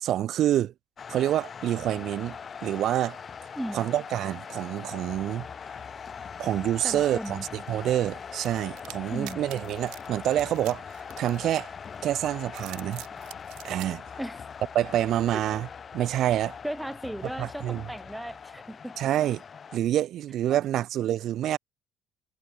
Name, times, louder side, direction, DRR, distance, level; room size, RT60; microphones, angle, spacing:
voice 1, 0.0-0.7 1.1-2.4 2.6-3.2 3.7-5.5 6.4-10.8 11.2-11.7 12.0-13.0 13.6-14.0 14.7-15.7 15.9-16.6 17.4-17.8 19.0-19.4 19.7-21.6, right 12 dB, 60° right, 0.5 m, -27 dB
sound 1, 1.0-19.8, left 6 dB, 35° left, 3.7 m, -41 dB
voice 2, 3.6-3.9 6.8-7.5 9.1-9.4 14.2-14.4 15.3-15.4 16.6-19.0 20.5-20.6, right 1 dB, 5° right, 1.9 m, -36 dB
sound 2, 8.4-11.9 12.4-13.9, right 22 dB, 85° right, 3.8 m, -45 dB
cardioid pair, 120°, 0 cm